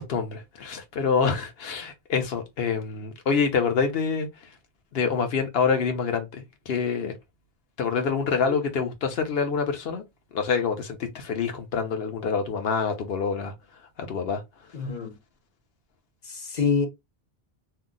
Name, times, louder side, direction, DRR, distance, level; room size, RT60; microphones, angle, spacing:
voice 1, 0.0-4.5 4.9-7.1 7.8-10.0 10.3-13.5 14.0-14.4, left 5 dB, 70° left, 1.0 m, -26 dB
voice 2, 14.7-15.2 16.3-16.9, left 5 dB, 50° left, 0.8 m, -26 dB
2.8 x 2.0 x 3.7 m
omnidirectional pair, 1.1 m